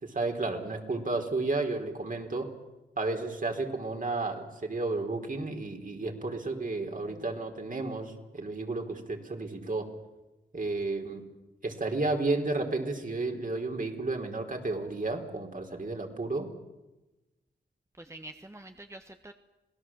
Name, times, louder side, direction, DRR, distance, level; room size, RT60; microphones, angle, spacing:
voice 1, 0.0-2.5 3.0-9.9 10.5-11.3 11.6-16.5, right 3 dB, 45° right, 3 dB, 4.1 m, -32 dB
voice 2, 18.0-19.3, right 1 dB, 15° right, 6 dB, 1.4 m, -47 dB
27.0 x 18.0 x 7.5 m, 1.1 s
cardioid pair, 50°, 19 cm